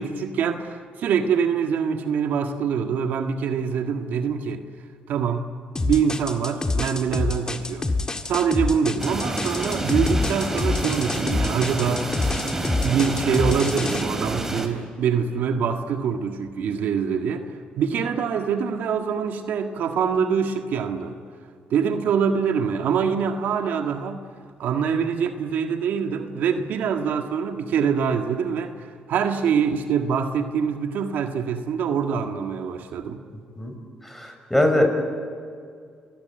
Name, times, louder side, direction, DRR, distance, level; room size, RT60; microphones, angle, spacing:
voice 1, 0.0-4.6 5.1-5.5 5.8-7.9 8.3-12.1 12.8-21.1 21.7-24.2 24.6-33.2, right 6 dB, 75° right, 5 dB, 1.7 m, -24 dB
sound 1, 5.8-14.0, left 3 dB, 25° left, 1.8 m, -26 dB
sound 2, 9.0-14.7, right 1 dB, 15° right, 3.6 m, -29 dB
voice 2, 34.1-34.9, left 1 dB, 5° left, 4 dB, 5.7 m, -21 dB
29.5 x 17.5 x 9.0 m, 2.2 s
cardioid pair, 90°, 3 cm